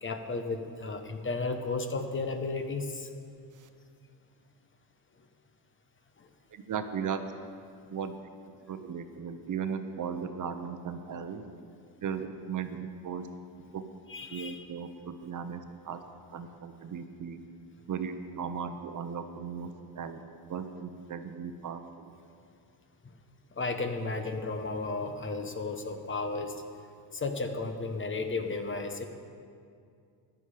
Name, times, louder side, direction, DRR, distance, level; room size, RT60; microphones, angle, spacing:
voice 1, 0.0-3.1 6.2-6.3 14.1-14.7 23.6-26.6 27.1-29.1, left 3 dB, 25° left, 7 dB, 1.0 m, -34 dB
voice 2, 6.5-7.3 7.9-8.1 8.7-11.4 12.0-13.3 13.7-13.8 14.3-16.0 16.3-17.4 17.9-20.2 20.5-22.1, right 6 dB, 45° right, 8 dB, 0.9 m, -37 dB
14.5 x 11.0 x 5.0 m, 2.4 s
cardioid pair, 115°, 44 cm